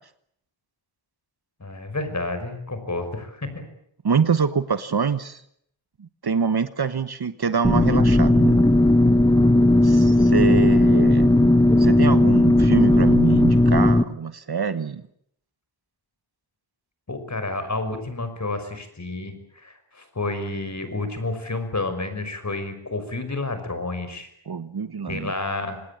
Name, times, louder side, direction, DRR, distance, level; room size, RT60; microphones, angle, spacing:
voice 1, 1.6-3.6 10.5-10.7 17.1-24.3 25.1-25.8, left 2 dB, 35° left, 9 dB, 5.7 m, -30 dB
voice 2, 4.0-5.4 6.0-8.6 9.8-11.3 11.8-15.0 24.5-25.3, right 6 dB, 50° right, 12 dB, 1.3 m, -25 dB
sound 1, 7.6-14.0, left 1 dB, 10° left, 1.1 m, -16 dB
26.0 x 20.0 x 8.8 m, 0.70 s
wide cardioid pair, 105°, 48 cm